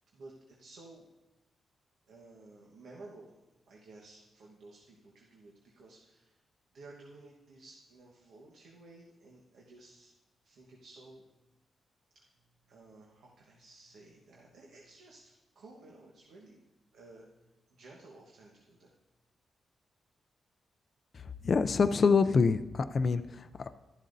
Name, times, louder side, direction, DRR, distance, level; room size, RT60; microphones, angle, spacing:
voice 1, 0.1-1.1 2.1-3.4 3.7-6.4 6.7-10.1 10.4-11.2 12.1-12.2 12.7-16.6 16.9-17.2 17.7-18.9, right 2 dB, 85° right, -2 dB, 1.2 m, -54 dB
voice 2, 21.1-23.8, left 5 dB, 40° left, 9 dB, 0.3 m, -27 dB
12.5 x 11.5 x 2.6 m, 1.0 s
wide cardioid pair, 135°, 0 cm